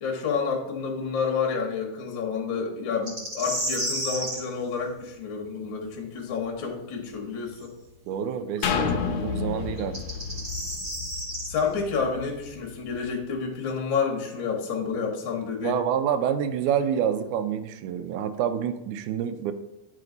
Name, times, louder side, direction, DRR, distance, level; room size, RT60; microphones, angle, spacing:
voice 1, 0.0-7.7 8.8-8.9 9.4-9.7 11.5-15.8, left 5 dB, 55° left, 0 dB, 1.4 m, -29 dB
sound 1, 3.1-4.4 7.6-7.7 9.8-11.5, right 1 dB, 30° right, 1.4 m, -31 dB
voice 2, 8.1-10.0 15.6-19.5, right 8 dB, 80° right, 10 dB, 1.9 m, -27 dB
sound 2, 8.6-12.4 12.9-13.0, left 6 dB, 75° left, 1.5 m, -30 dB
9.8 x 3.9 x 3.8 m, 0.93 s
omnidirectional pair, 3.6 m